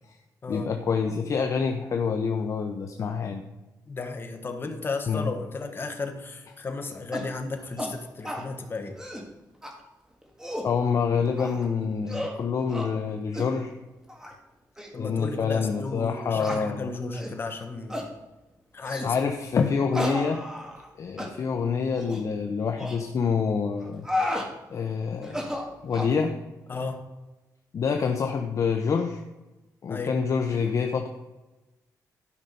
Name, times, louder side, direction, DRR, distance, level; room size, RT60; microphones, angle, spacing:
voice 1, 0.5-3.4 5.1-5.3 10.6-13.7 15.0-16.9 18.8-20.4 21.0-24.1 24.7-25.5 25.8-26.4 26.7-26.8 27.7-29.2 29.8-31.1, left 5 dB, 50° left, 5 dB, 0.7 m, -27 dB
voice 2, 3.9-9.0 14.9-17.9 18.7-19.1 26.7-27.0 29.9-30.2, left 3 dB, 35° left, 5 dB, 1.4 m, -34 dB
sound 1, 7.1-7.3 7.8-7.9 8.2-8.5 8.9-9.3 9.6-9.7 10.2-10.7 11.4-11.7 12.1-12.4 12.7-12.9 13.3-13.5 14.1-14.3 14.8-14.9 15.5-15.6 16.4-16.6 17.1-17.4 17.9-18.1 18.9-19.1 19.9-20.9 21.2-21.3 21.9-22.2 22.8-23.0 23.8-24.5 25.2-26.2, left 1 dB, 10° right, 1.6 m, -32 dB
12.5 x 5.6 x 5.4 m, 1.1 s
wide cardioid pair, 130°, 7 cm